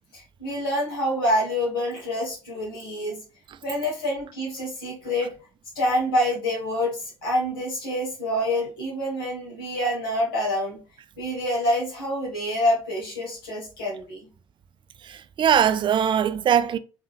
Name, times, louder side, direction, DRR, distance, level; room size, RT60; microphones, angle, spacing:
voice 1, 0.1-3.2 3.6-5.3 5.7-10.8 11.2-14.3, equal, 85° left, 1.0 m, -26 dB
voice 2, 15.0-16.8, right 8 dB, 45° right, 0.4 m, -21 dB
3.5 x 2.7 x 2.9 m
hypercardioid pair, 55°, 11 cm